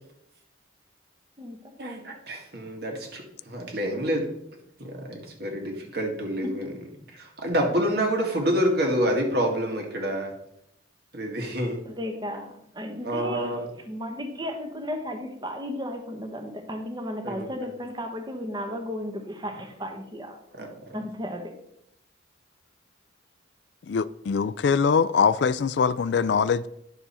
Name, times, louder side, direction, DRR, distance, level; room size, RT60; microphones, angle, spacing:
voice 1, 1.8-4.3 4.8-6.6 7.1-10.3 11.1-11.8 13.0-13.6 17.2-17.5 20.5-20.7, equal, 55° right, 1.8 m, -27 dB
voice 2, 11.8-20.4 20.9-21.5, equal, 20° right, 1.1 m, -34 dB
voice 3, 23.9-26.7, left 6 dB, 60° left, 0.3 m, -23 dB
10.5 x 6.8 x 4.3 m
head